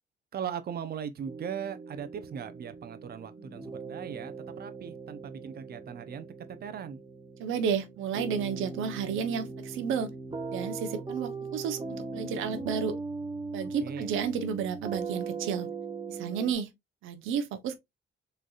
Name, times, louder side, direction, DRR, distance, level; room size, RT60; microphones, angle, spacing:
voice 1, 0.3-7.0 13.8-14.1, right 8 dB, 50° right, 0.7 m, -39 dB
sound 1, 1.3-16.5, right 4 dB, 20° right, 1.0 m, -39 dB
voice 2, 7.4-10.1 10.5-13.0 13.5-15.7 16.1-16.7 17.0-17.8, right 7 dB, 90° right, 0.8 m, -32 dB
4.0 x 3.3 x 2.3 m
cardioid pair, 90°, 20 cm